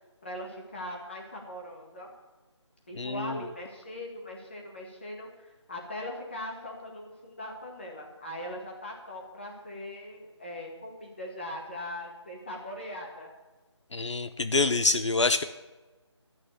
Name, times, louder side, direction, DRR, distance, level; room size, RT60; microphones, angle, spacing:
voice 1, 0.2-2.1 2.9-13.3, left 1 dB, 25° left, -1 dB, 1.9 m, -40 dB
voice 2, 3.0-3.4 13.9-15.4, left 3 dB, 75° left, 10 dB, 0.8 m, -26 dB
13.0 x 6.2 x 8.4 m, 1.2 s
figure-of-eight pair, 180°, 15 cm